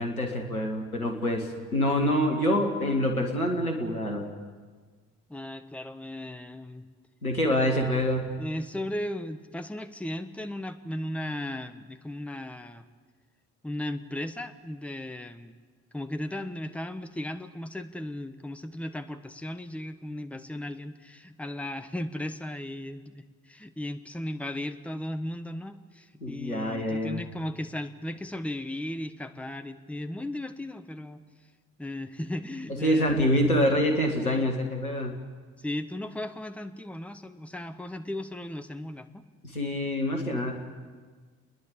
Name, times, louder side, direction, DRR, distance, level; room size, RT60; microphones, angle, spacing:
voice 1, 0.0-4.2 7.2-8.3 26.2-27.2 32.8-35.2 39.4-40.5, equal, 90° left, 2 dB, 1.5 m, -26 dB
voice 2, 5.3-6.9 7.6-7.9 8.4-12.8 13.6-15.6 15.9-31.2 31.8-33.2 34.2-34.4 35.6-39.3, left 1 dB, 5° left, 8 dB, 1.2 m, -36 dB
30.0 x 10.5 x 8.6 m, 1.5 s
figure-of-eight pair, 45°, 42 cm